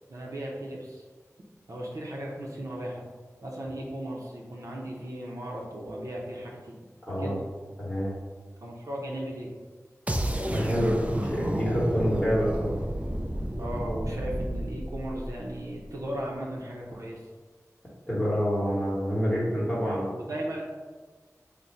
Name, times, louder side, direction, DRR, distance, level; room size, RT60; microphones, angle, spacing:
voice 1, 0.1-1.0 1.7-3.0 3.4-6.7 7.2-7.4 8.6-9.5 13.6-17.2 19.8-20.6, right 1 dB, 70° right, -3 dB, 0.7 m, -36 dB
voice 2, 7.8-8.1 10.5-12.8 18.1-20.1, equal, 20° left, -9 dB, 1.1 m, -27 dB
sound 1, 10.1-16.0, right 1 dB, 25° right, 0.4 m, -32 dB
3.9 x 2.2 x 4.3 m, 1.4 s
wide cardioid pair, 60°, 6 cm